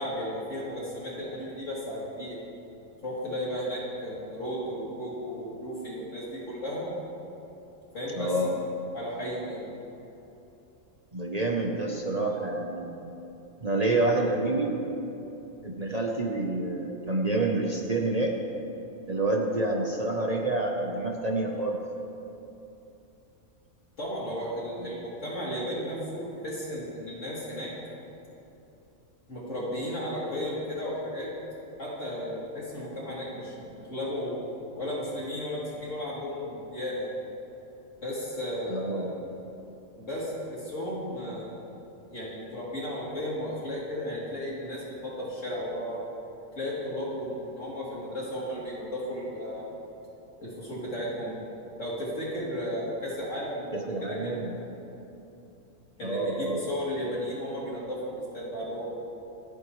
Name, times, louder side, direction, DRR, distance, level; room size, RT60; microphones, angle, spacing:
voice 1, 0.0-2.4 3.0-6.9 7.9-8.3 8.9-9.7 24.0-27.7 29.3-31.3 31.8-34.3 34.8-37.2 38.0-39.2 40.0-41.6 42.1-46.0 46.6-49.7 50.4-51.4 51.8-54.6 56.0-58.9, equal, 65° left, -7 dB, 3.7 m, -34 dB
voice 2, 8.1-8.5 11.1-13.1 13.6-14.8 15.6-18.4 19.1-21.8 24.8-25.0 38.7-39.1 53.7-54.5 56.0-56.6, right 2 dB, 30° right, -1 dB, 1.0 m, -28 dB
27.5 x 9.5 x 3.3 m, 2.9 s
omnidirectional pair, 1.4 m